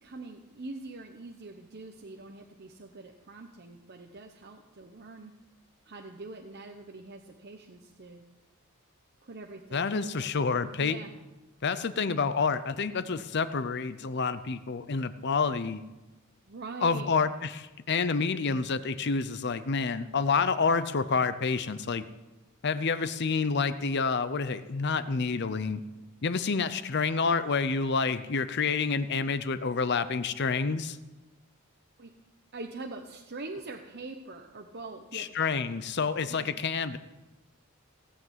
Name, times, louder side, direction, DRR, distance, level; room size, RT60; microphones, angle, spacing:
voice 1, 0.0-5.3 5.8-8.2 9.2-11.1 16.5-17.1 32.0-32.1 32.5-35.3 36.3-36.6, right 3 dB, 45° right, 3 dB, 0.9 m, -44 dB
voice 2, 9.7-11.0 11.6-15.8 16.8-22.0 22.6-25.8 26.2-31.0 35.1-37.0, left 5 dB, 50° left, 13 dB, 0.6 m, -28 dB
17.5 x 8.5 x 7.5 m, 1.1 s
head